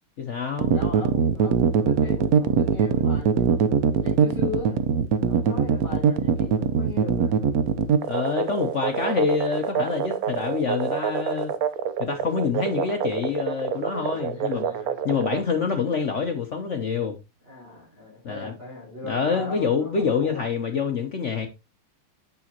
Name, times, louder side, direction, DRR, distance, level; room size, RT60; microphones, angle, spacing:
voice 1, 0.2-0.7 8.1-11.5 12.0-14.7 15.0-17.1 18.2-18.5 19.0-21.5, left 5 dB, 70° left, 0.6 m, -26 dB
sound 1, 0.6-15.4, right 7 dB, 75° right, 0.8 m, -23 dB
voice 2, 0.7-4.8 5.3-7.4 13.9-15.3 17.4-20.5, left 3 dB, 30° right, 4.9 m, -38 dB
8.5 x 6.8 x 2.9 m
omnidirectional pair, 2.4 m